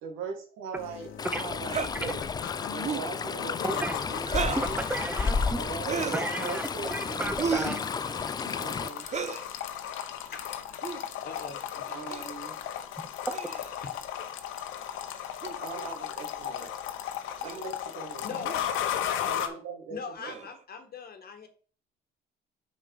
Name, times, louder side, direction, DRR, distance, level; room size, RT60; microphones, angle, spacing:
voice 1, 0.0-2.2 2.7-4.9 5.5-7.4 8.6-9.0 11.9-12.5 15.6-16.7 17.4-18.5 19.3-20.0 20.3-20.4, right 5 dB, 85° right, 3 dB, 1.9 m, -40 dB
sound 1, 0.8-19.5, left 10 dB, 75° left, 0.9 m, -36 dB
Stream, 1.2-8.9, left 5 dB, 20° left, 0.3 m, -33 dB
sound 2, 1.7-1.9 2.8-3.1 4.2-4.7 5.8-6.3 7.4-7.8 9.0-9.4 10.7-11.0 12.1-12.3 13.3-13.8 15.4-15.6 16.6-16.7 17.4-17.6 18.4-18.6 20.2-20.6, right 6 dB, 35° right, 0.6 m, -33 dB
voice 2, 3.6-4.0 4.6-5.6 6.1-7.8, right 2 dB, 10° right, 10 dB, 0.8 m, -33 dB
voice 3, 11.2-12.2 13.8-13.9 18.2-18.5 19.9-21.5, left 5 dB, 45° left, 6 dB, 1.5 m, -41 dB
5.4 x 5.0 x 4.7 m, 0.42 s
supercardioid pair, 80°, 21 cm